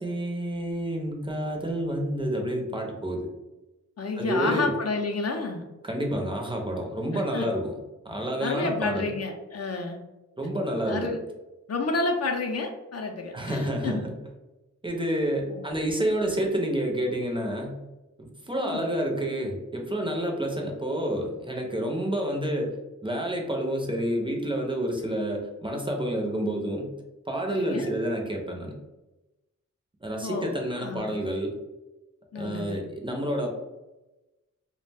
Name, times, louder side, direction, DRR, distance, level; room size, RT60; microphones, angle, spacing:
voice 1, 0.0-3.3 4.2-4.7 5.8-7.7 8.0-9.1 10.4-11.1 13.3-14.1 14.8-17.8 18.2-22.8 23.0-26.9 27.3-28.7 30.0-31.6 32.3-33.5, right 1 dB, 15° right, 1 dB, 0.4 m, -29 dB
voice 2, 4.0-5.6 7.1-7.5 8.4-10.0 10.9-11.2 11.7-14.0 15.5-15.6 18.6-18.9 27.5-27.9 30.2-31.1 32.3-32.8, left 3 dB, 55° left, 3 dB, 0.4 m, -30 dB
2.4 x 2.1 x 3.2 m, 1.0 s
wide cardioid pair, 95°, 31 cm